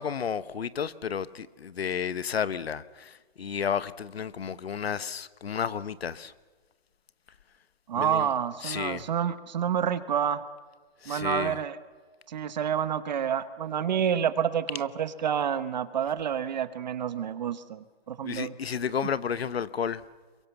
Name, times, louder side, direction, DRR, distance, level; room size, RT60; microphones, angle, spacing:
voice 1, 0.0-6.3 7.9-8.3 8.6-9.0 11.0-11.6 18.2-20.0, left 7 dB, 80° left, 1.1 m, -32 dB
voice 2, 7.9-10.4 11.1-11.8 12.3-18.5, right 8 dB, 45° right, 1.0 m, -28 dB
23.0 x 23.0 x 7.1 m
hypercardioid pair, 155°, 30 cm